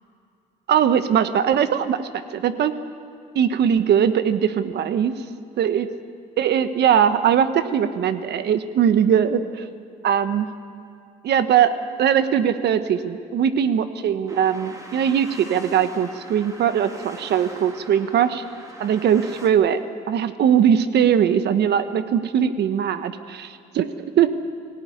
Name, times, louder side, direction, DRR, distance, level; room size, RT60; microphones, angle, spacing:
voice 1, 0.7-2.0 2.3-2.7 3.3-5.1 5.6-5.9 6.4-9.6 10.0-10.5 11.2-11.7 12.0-18.4 18.8-19.8 20.1-23.9 24.2-24.3, right 8 dB, 60° right, 10 dB, 1.3 m, -20 dB
sound 1, 14.3-19.5, right 1 dB, 15° right, 2.8 m, -42 dB
19.5 x 17.0 x 9.7 m, 2.5 s
supercardioid pair, 85°, 19 cm